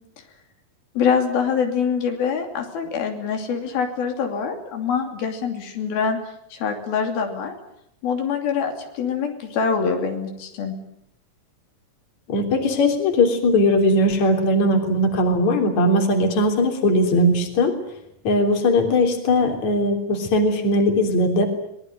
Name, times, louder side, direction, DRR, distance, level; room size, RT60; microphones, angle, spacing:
voice 1, 1.0-6.2 6.5-7.5 8.0-10.7, left 6 dB, 90° left, 4 dB, 4.8 m, -24 dB
voice 2, 12.3-17.7 18.2-21.5, left 1 dB, 50° left, 4 dB, 4.5 m, -19 dB
24.0 x 20.5 x 9.3 m, 0.76 s
omnidirectional pair, 4.1 m